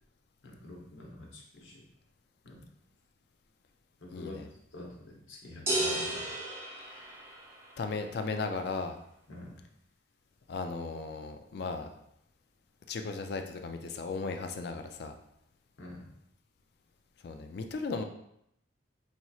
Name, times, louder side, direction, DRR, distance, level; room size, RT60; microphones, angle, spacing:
voice 1, 0.4-1.8 2.4-2.6 4.0-4.4 4.7-6.3 9.3-9.6 15.8-16.0, left 1 dB, 80° left, -2 dB, 0.9 m, -47 dB
voice 2, 4.1-4.5 7.8-9.0 10.5-11.9 12.9-15.1 17.2-18.0, left 4 dB, 55° left, 6 dB, 0.3 m, -36 dB
sound 1, 5.7-7.7, right 1 dB, 15° right, 0.5 m, -33 dB
4.1 x 2.9 x 2.3 m, 0.76 s
head